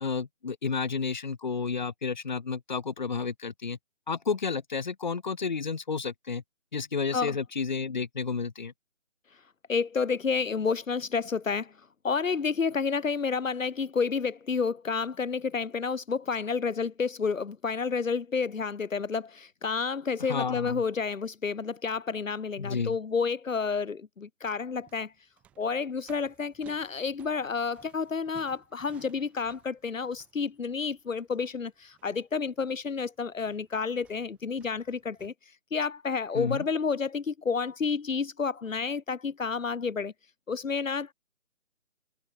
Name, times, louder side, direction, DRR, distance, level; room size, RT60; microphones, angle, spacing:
voice 1, 0.0-3.8 4.1-6.4 6.7-8.7 20.3-20.8 22.6-23.0 36.3-36.6, left 5 dB, 35° left, 1.7 m, -31 dB
voice 2, 9.7-11.7 12.0-25.1 25.6-35.3 35.7-40.1 40.5-41.1, left 5 dB, 80° left, 1.1 m, -30 dB
sound 1, 24.6-35.3, right 11 dB, 5° right, 1.7 m, -60 dB
figure-of-eight pair, 170°, 39 cm